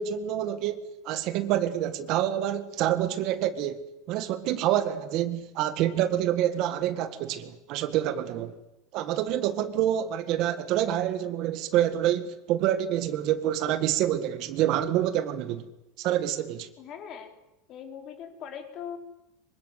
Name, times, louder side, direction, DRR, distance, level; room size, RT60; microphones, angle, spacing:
voice 1, 0.0-8.5 8.9-15.7 16.0-16.7, right 11 dB, 40° right, 1.7 m, -27 dB
voice 2, 16.8-17.3 17.7-19.0, left 8 dB, 35° left, 4.1 m, -40 dB
26.0 x 24.5 x 8.2 m
supercardioid pair, 170°, 0 cm